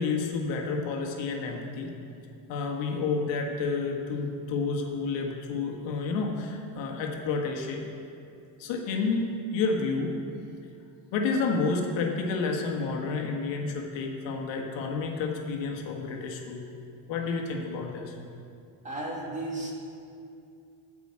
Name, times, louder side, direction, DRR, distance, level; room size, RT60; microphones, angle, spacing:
voice 1, 0.0-1.9 2.5-7.9 8.6-10.1 11.1-16.6 17.1-18.1, left 4 dB, 65° left, 1 dB, 1.6 m, -30 dB
voice 2, 18.8-19.7, right 2 dB, 15° right, -3 dB, 1.9 m, -34 dB
14.0 x 4.9 x 7.4 m, 2.5 s
cardioid pair, 145°, 47 cm